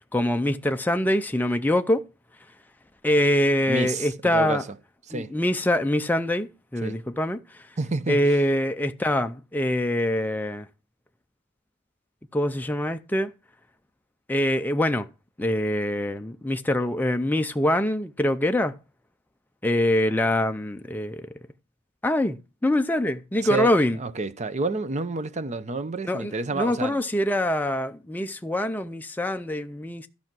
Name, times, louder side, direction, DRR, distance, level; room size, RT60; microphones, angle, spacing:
voice 1, 0.1-2.0 3.0-4.6 5.1-7.6 8.1-10.7 12.3-13.3 14.3-15.1 15.4-18.7 19.6-21.3 22.0-24.0 26.1-30.1, left 1 dB, 10° left, 0.4 m, -24 dB
voice 2, 3.7-4.7 5.1-5.3 6.8-7.0 7.8-8.4 23.4-23.7 24.0-27.0, right 3 dB, 30° right, 0.7 m, -29 dB
13.5 x 5.7 x 6.0 m
head